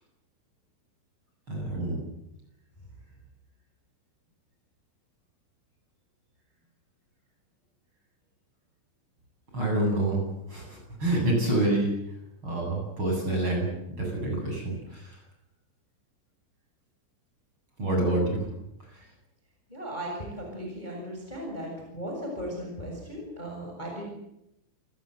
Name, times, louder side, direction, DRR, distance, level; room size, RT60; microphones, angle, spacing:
voice 1, 1.5-2.0 9.5-10.2 10.5-11.9 12.4-13.7 14.0-15.2 17.8-18.4 18.9-19.1, right 1 dB, 25° right, 0 dB, 8.7 m, -27 dB
voice 2, 19.7-24.0, equal, 10° left, 0 dB, 6.6 m, -37 dB
29.0 x 18.5 x 8.0 m, 0.84 s
omnidirectional pair, 5.6 m